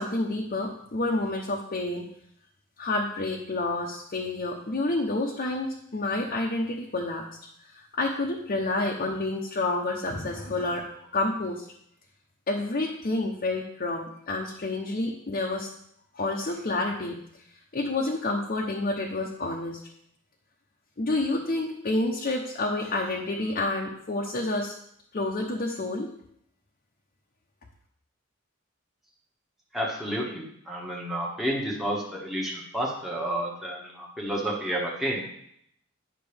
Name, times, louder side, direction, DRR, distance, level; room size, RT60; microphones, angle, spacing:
voice 1, 0.0-2.1 2.8-7.3 7.6-11.7 12.5-15.7 16.1-17.1 17.7-19.8 21.0-24.7 25.1-26.1, left 2 dB, 45° left, -1 dB, 0.8 m, -29 dB
voice 2, 29.7-35.2, right 1 dB, ahead, -3 dB, 1.2 m, -30 dB
9.8 x 5.8 x 3.4 m, 0.72 s
head